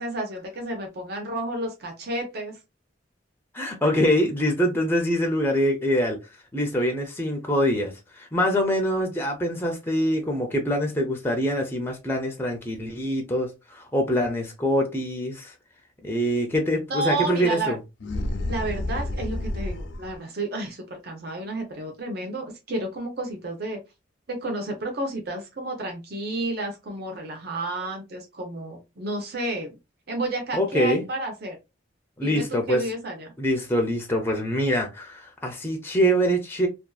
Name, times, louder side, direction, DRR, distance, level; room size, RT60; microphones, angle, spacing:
voice 1, 0.0-2.6 16.9-17.8 18.5-23.8 24.3-29.7 30.1-31.6 32.2-33.3, right 2 dB, 55° right, 0.7 m, -31 dB
voice 2, 3.5-6.2 6.5-15.5 16.0-17.8 30.5-31.0 32.2-32.8 33.4-36.7, equal, 10° left, 0.5 m, -24 dB
sound 1, 18.0-20.2, left 1 dB, 70° left, 0.4 m, -30 dB
2.6 x 2.3 x 2.3 m
head